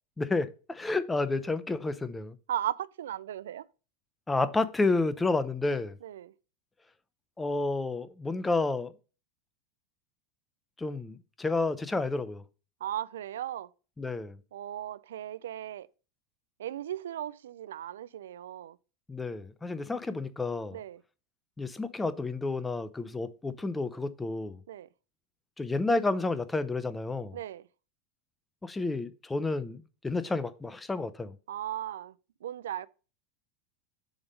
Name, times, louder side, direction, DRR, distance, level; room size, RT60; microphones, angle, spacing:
voice 1, 0.2-2.4 4.3-6.0 7.4-8.9 10.8-12.4 14.0-14.4 19.1-20.8 21.6-24.6 25.6-27.4 28.6-31.3, left 3 dB, 10° left, 0.7 m, -30 dB
voice 2, 2.5-3.7 6.0-6.3 12.8-13.7 14.5-15.9 16.6-18.8 20.7-21.0 24.7-24.9 27.3-27.7 31.5-32.1 32.4-32.9, right 11 dB, 80° right, 0.3 m, -36 dB
7.1 x 3.6 x 5.2 m
hypercardioid pair, 100°, 0 cm